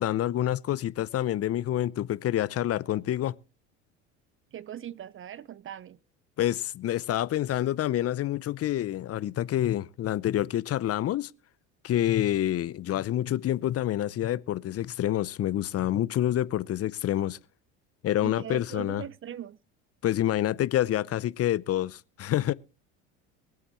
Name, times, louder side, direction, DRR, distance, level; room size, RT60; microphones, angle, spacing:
voice 1, 0.0-3.4 6.4-11.3 11.8-17.4 18.0-19.0 20.0-22.5, left 12 dB, 40° left, 0.6 m, -27 dB
voice 2, 4.5-6.0 18.2-19.6, right 10 dB, 35° right, 0.6 m, -40 dB
23.0 x 8.5 x 3.1 m
hypercardioid pair, 75°, 38 cm